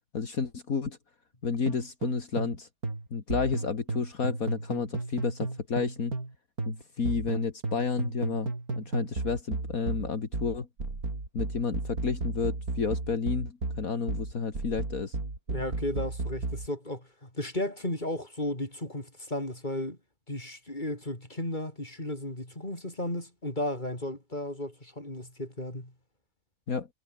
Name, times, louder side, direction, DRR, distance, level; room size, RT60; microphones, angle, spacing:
voice 1, 0.1-1.0 1.4-2.7 3.1-6.1 6.6-10.7 11.3-15.2 26.7-26.9, left 5 dB, 65° left, 2.6 m, -31 dB
sound 1, 1.7-2.6 2.8-6.3 6.6-16.7, right 3 dB, 75° right, 5.1 m, -33 dB
voice 2, 15.5-20.0 20.3-25.9, left 1 dB, 30° left, 6.9 m, -34 dB
omnidirectional pair, 1.6 m